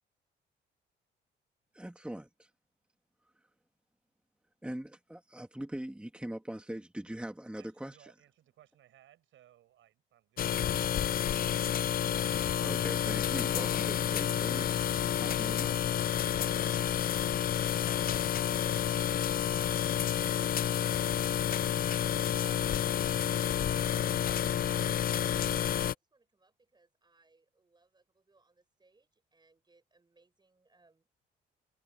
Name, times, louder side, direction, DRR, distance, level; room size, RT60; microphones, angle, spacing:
voice 1, 1.7-2.5 4.6-8.0 12.3-14.7 15.2-15.8, right 1 dB, 5° right, 2.3 m, -41 dB
voice 2, 7.6-11.7, right 12 dB, 80° right, 7.9 m, -63 dB
sound 1, 10.4-25.9, left 10 dB, 45° left, 0.5 m, -30 dB
voice 3, 23.3-24.8 25.2-31.1, right 3 dB, 20° right, 7.5 m, -63 dB
cardioid pair, 90°, 20 cm